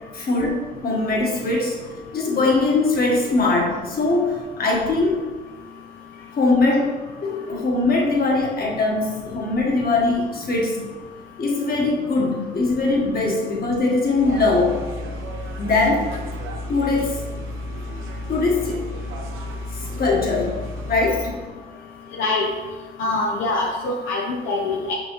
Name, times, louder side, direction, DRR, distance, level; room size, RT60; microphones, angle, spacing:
voice 1, 0.1-1.8 2.1-5.2 6.3-6.9 7.2-10.8 11.4-14.8 15.6-16.2 16.7-17.2 18.3-18.8 19.7-20.6 20.9-21.3, left 3 dB, 50° left, -1 dB, 1.5 m, -21 dB
sound 1, 14.2-21.3, equal, 80° right, 0.7 m, -32 dB
voice 2, 22.2-22.5 23.0-24.9, left 2 dB, 80° left, -1 dB, 0.8 m, -24 dB
6.1 x 5.5 x 3.2 m, 1.3 s
cardioid pair, 90°, 20 cm